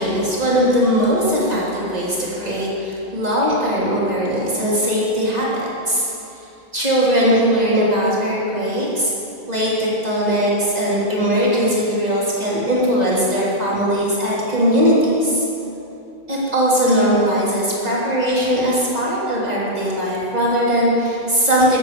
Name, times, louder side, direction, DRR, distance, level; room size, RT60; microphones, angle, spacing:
voice 1, 0.0-6.1 6.7-9.1 9.5-15.4 16.3-21.8, equal, 20° right, -7 dB, 3.2 m, -19 dB
14.0 x 8.1 x 6.8 m, 2.9 s
omnidirectional pair, 2.2 m